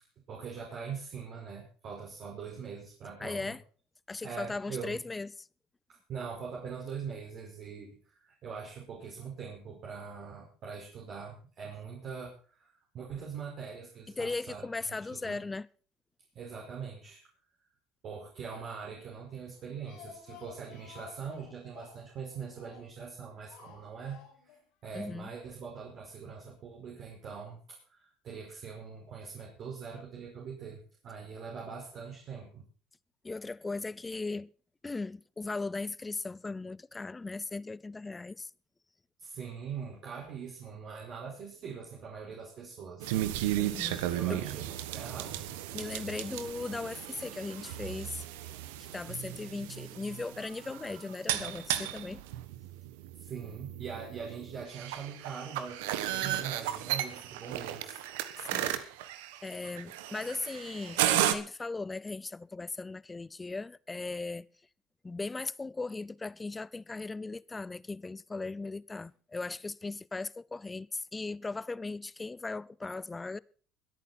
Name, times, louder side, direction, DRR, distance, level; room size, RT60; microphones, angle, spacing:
voice 1, 0.3-3.5 4.2-5.0 5.9-14.6 15.2-15.4 16.3-17.2 18.0-24.2 24.8-32.6 39.2-43.1 44.1-45.5 53.2-58.0, right 6 dB, 55° right, 5.1 m, -42 dB
voice 2, 3.2-3.6 4.1-5.5 14.2-15.7 24.9-25.3 33.2-34.5 34.8-38.5 43.6-44.4 45.7-48.2 48.9-52.2 58.4-58.8 59.4-64.5 65.0-73.4, left 3 dB, 20° left, 0.6 m, -38 dB
Speech, 19.5-23.1 23.5-24.6 24.9-25.0 25.3-25.4, left 8 dB, 75° left, 4.8 m, -53 dB
sound 1, 43.0-61.3, right 13 dB, 85° right, 1.3 m, -34 dB
22.0 x 9.1 x 4.4 m
supercardioid pair, 80°, 0 cm